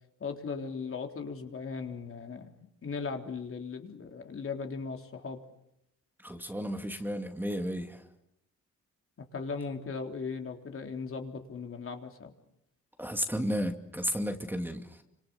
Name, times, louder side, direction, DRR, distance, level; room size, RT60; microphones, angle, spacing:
voice 1, 0.2-5.4 9.3-12.3, left 5 dB, 45° left, 3 dB, 3.8 m, -38 dB
voice 2, 6.2-8.0 13.0-14.9, equal, 5° right, 5 dB, 2.6 m, -33 dB
30.0 x 26.5 x 7.1 m, 0.81 s
cardioid pair, 90°, 30 cm